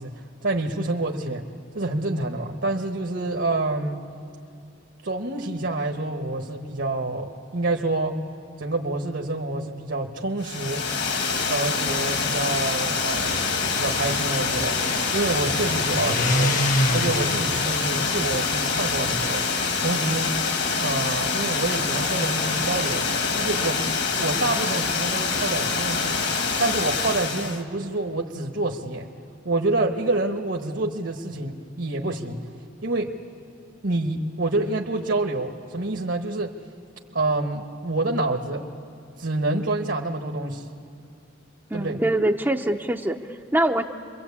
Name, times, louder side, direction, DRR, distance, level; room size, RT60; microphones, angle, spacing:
voice 1, 0.0-1.5 1.7-4.0 5.0-8.2 8.6-10.9 11.5-14.8 15.1-16.5 16.9-19.4 19.8-20.3 20.8-23.1 23.4-23.8 24.2-26.2 26.6-29.1 29.4-32.4 32.8-33.1 33.8-36.6 37.1-38.6 39.2-40.6 41.7-42.0, right 2 dB, 65° right, 2 dB, 1.3 m, -27 dB
Water, 10.4-27.6, left 4 dB, 60° left, 1.8 m, -25 dB
sound 1, 13.0-19.3, left 1 dB, 40° left, 1.0 m, -29 dB
voice 2, 41.7-43.8, right 1 dB, 10° right, 3 dB, 0.6 m, -24 dB
28.0 x 23.0 x 8.5 m, 2.4 s
head